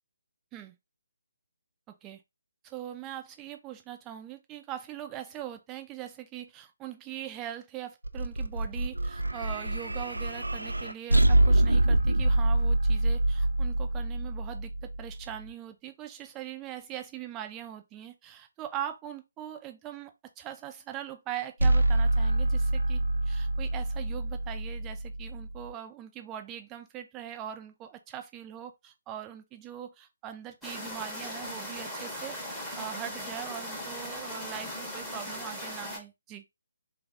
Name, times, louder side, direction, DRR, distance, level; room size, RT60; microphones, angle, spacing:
voice 1, 2.6-36.4, right 11 dB, 15° right, 0.5 m, -41 dB
sound 1, 8.0-15.3 21.6-25.7, right 1 dB, 80° right, 0.3 m, -26 dB
sound 2, 30.6-36.0, left 1 dB, ahead, 0.8 m, -38 dB
3.3 x 2.3 x 3.3 m
figure-of-eight pair, 145°, 0 cm